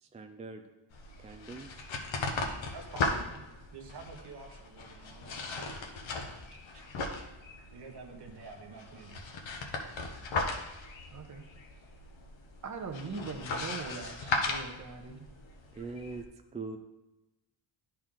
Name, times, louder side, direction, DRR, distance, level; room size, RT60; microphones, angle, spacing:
voice 1, 0.0-0.6 1.2-1.7 15.7-16.3 16.5-16.8, right 3 dB, 15° right, 5 dB, 0.4 m, -42 dB
sound 1, 0.9-16.2, left 3 dB, 70° left, 1.1 m, -37 dB
voice 2, 2.7-3.4 3.7-5.9 6.7-6.8 7.7-9.3, right 4 dB, 60° right, 3 dB, 1.2 m, -49 dB
voice 3, 11.1-11.4 12.6-15.3, right 4 dB, 35° right, 4 dB, 1.0 m, -41 dB
10.5 x 4.4 x 3.8 m, 1.0 s
cardioid pair, 105°, 47 cm